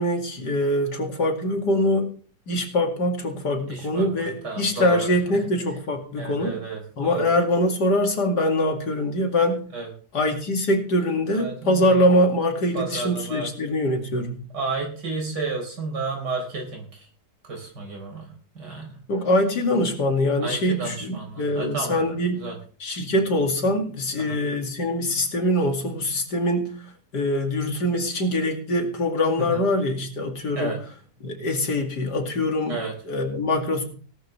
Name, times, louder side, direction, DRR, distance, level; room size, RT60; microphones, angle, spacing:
voice 1, 0.0-2.1 2.5-6.6 7.0-9.6 10.1-14.4 19.1-22.5 22.8-26.7 27.1-30.7 31.2-32.8 33.1-33.8, left 1 dB, 75° left, 3 dB, 3.0 m, -23 dB
voice 2, 3.7-5.1 6.2-7.3 9.7-9.9 11.3-12.0 12.7-13.5 14.5-17.1 17.5-19.0 20.4-22.0 22.3-22.6 24.2-24.4 29.4-29.6 30.6-30.8 32.7-32.9, right 4 dB, 80° right, 1 dB, 4.8 m, -32 dB
18.0 x 12.5 x 3.4 m, 0.41 s
omnidirectional pair, 1.8 m